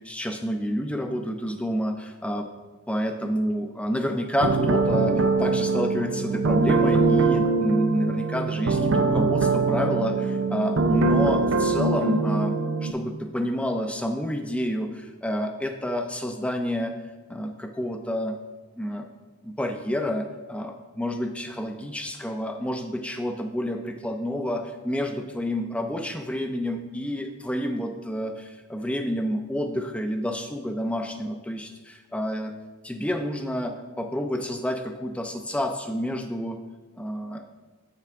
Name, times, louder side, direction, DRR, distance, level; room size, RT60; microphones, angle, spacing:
voice 1, 0.0-2.5 2.9-12.6 12.8-17.0 17.3-18.4 18.8-19.1 19.4-32.5 32.8-36.6 37.0-37.4, equal, 5° left, 6 dB, 0.4 m, -29 dB
sound 1, 4.4-12.9, right 3 dB, 60° right, 0.5 m, -23 dB
8.2 x 5.8 x 3.5 m, 1.3 s
head